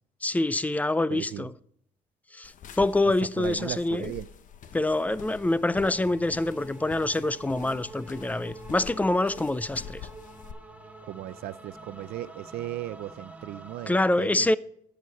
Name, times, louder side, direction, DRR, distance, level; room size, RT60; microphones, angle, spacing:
voice 1, 0.2-1.5 2.3-4.1 4.7-10.0 13.9-14.6, left 2 dB, 10° left, 0.4 m, -26 dB
voice 2, 1.1-1.5 3.4-4.3 11.1-14.6, right 14 dB, 65° right, 0.5 m, -37 dB
sound 1, 2.4-10.5, left 8 dB, 50° left, 0.8 m, -46 dB
sound 2, 4.6-13.9, right 2 dB, 10° right, 1.2 m, -47 dB
11.0 x 8.0 x 4.1 m
cardioid pair, 110°, 17 cm